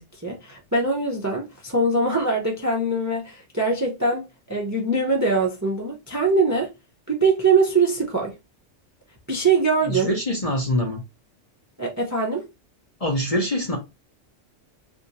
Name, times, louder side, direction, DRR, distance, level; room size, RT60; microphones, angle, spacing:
voice 1, 0.0-6.7 7.1-8.3 9.3-10.1 11.8-12.4, right 3 dB, 20° right, 0.6 m, -22 dB
voice 2, 9.9-11.0 13.0-13.8, left 1 dB, 35° left, 0.7 m, -24 dB
2.6 x 2.5 x 4.0 m
omnidirectional pair, 1.3 m